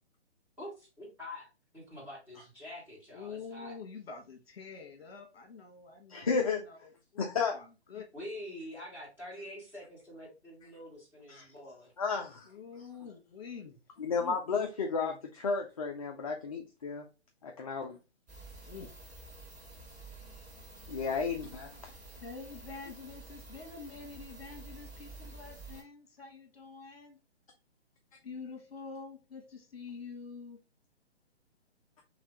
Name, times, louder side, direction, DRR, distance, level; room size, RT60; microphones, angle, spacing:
voice 1, 0.6-1.5 1.7-3.8 8.1-11.9, left 1 dB, 5° right, 1.9 m, -46 dB
voice 2, 3.1-8.1 12.5-13.8 14.2-15.2 18.7-18.9 22.2-27.2 28.2-30.6, left 5 dB, 60° left, 1.2 m, -47 dB
voice 3, 6.1-6.6 7.2-7.6 11.3-11.4 12.0-12.5 14.0-17.0 17.4-18.0 20.9-21.9, left 5 dB, 35° left, 0.4 m, -33 dB
sound 1, 18.3-25.8, right 2 dB, 25° right, 2.4 m, -50 dB
3.3 x 3.3 x 3.8 m
figure-of-eight pair, 140°, 34 cm